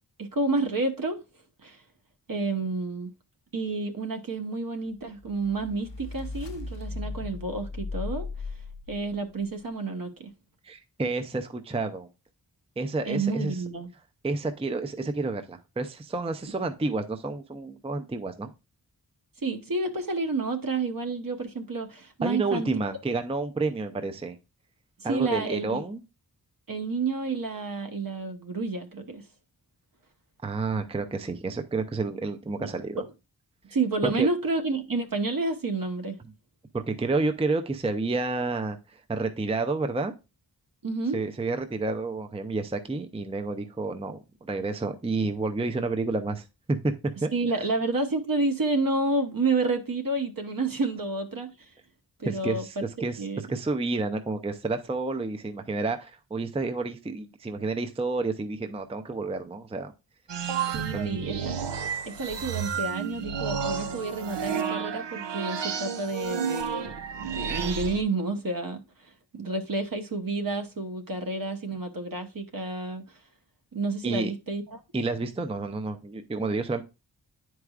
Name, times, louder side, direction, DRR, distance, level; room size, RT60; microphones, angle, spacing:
voice 1, 0.2-1.2 1.6-1.8 2.3-3.1 3.5-8.3 8.9-10.3 13.1-13.9 19.4-22.7 25.1-25.8 26.7-29.3 33.7-36.2 40.8-41.2 47.3-51.7 52.2-52.7 53.2-53.4 60.7-61.5 62.1-68.8 69.3-73.1 73.7-74.8, right 3 dB, 55° right, 1.0 m, -30 dB
sound 1, 5.2-9.4, left 3 dB, 85° left, 0.8 m, -37 dB
voice 2, 10.6-12.1 12.8-13.6 14.2-18.5 22.2-24.4 25.0-26.0 30.4-33.0 34.0-34.3 36.7-40.1 41.1-46.9 47.2-47.7 52.3-59.9 60.7-61.2 74.0-74.3 74.9-76.8, right 3 dB, 15° right, 0.5 m, -30 dB
sound 2, 60.3-68.0, right 7 dB, 90° right, 0.6 m, -31 dB
9.8 x 4.7 x 2.4 m
wide cardioid pair, 70°, 41 cm